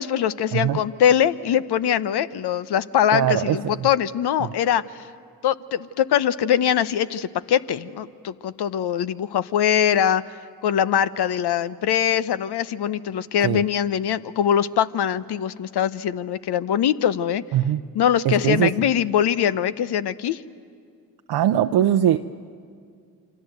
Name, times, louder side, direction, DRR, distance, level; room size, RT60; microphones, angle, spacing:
voice 1, 0.0-5.1 5.4-17.4 17.9-20.4, left 9 dB, 60° left, 15 dB, 0.9 m, -22 dB
voice 2, 3.1-3.9 4.4-4.5 13.4-13.6 17.5-17.8 18.2-18.7 21.3-22.2, right 11 dB, 60° right, 6 dB, 0.8 m, -21 dB
28.5 x 24.0 x 8.0 m, 2.2 s
hypercardioid pair, 40°, 44 cm